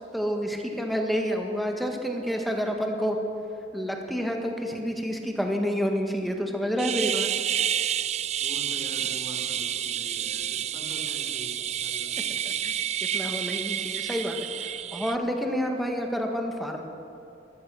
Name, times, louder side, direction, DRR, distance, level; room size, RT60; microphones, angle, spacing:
voice 1, 0.0-3.2 3.7-7.3 12.6-12.7 13.1-16.8, equal, ahead, 2 dB, 1.5 m, -29 dB
sound 1, 6.8-15.2, right 10 dB, 35° right, 0.3 m, -29 dB
voice 2, 8.4-12.3, equal, 20° left, -3 dB, 3.4 m, -43 dB
13.5 x 13.5 x 7.5 m, 2.9 s
head